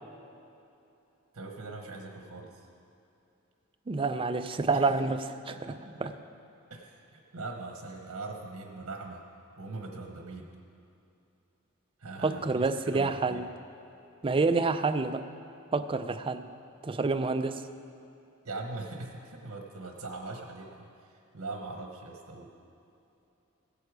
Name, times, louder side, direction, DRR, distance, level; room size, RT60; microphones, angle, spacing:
voice 1, 1.3-2.6 4.7-5.0 5.5-6.1 6.7-9.2 9.6-10.5 12.0-13.4 18.4-22.5, right 3 dB, 75° right, 2 dB, 1.1 m, -41 dB
voice 2, 3.9-5.2 5.7-6.1 12.2-13.5 14.2-15.3 15.7-16.5 16.8-17.6, right 3 dB, 25° right, 9 dB, 0.4 m, -28 dB
16.0 x 8.4 x 4.9 m, 2.8 s
head